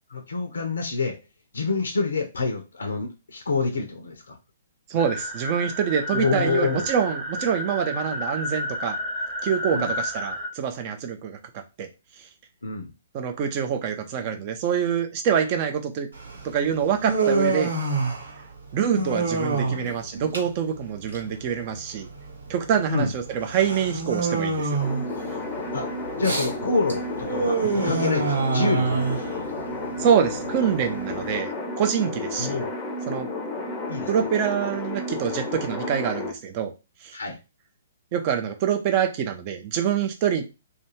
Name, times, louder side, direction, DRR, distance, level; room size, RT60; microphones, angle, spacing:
voice 1, 0.1-1.2 1.5-4.4 6.1-6.9 9.7-9.9 12.6-12.9 19.6-20.1 22.9-23.1 25.7-25.9 26.2-29.7 32.4-32.7 33.9-34.2 37.1-37.4, left 3 dB, 65° left, 4 dB, 0.5 m, -27 dB
voice 2, 4.9-9.0 9.4-11.9 13.1-16.1 16.4-17.7 18.7-22.1 22.5-24.8 30.0-31.5 31.8-32.6 33.1-33.3 34.1-36.7 37.0-37.2 38.1-40.4, right 8 dB, 35° right, 5 dB, 0.5 m, -25 dB
sound 1, 5.0-10.5, left 1 dB, 5° right, 0.9 m, -31 dB
Human voice, 16.1-31.4, right 3 dB, 70° right, 1.0 m, -28 dB
sound 2, 24.8-36.3, left 2 dB, 20° left, 0.6 m, -32 dB
2.4 x 2.3 x 3.1 m, 0.28 s
figure-of-eight pair, 120°, 0 cm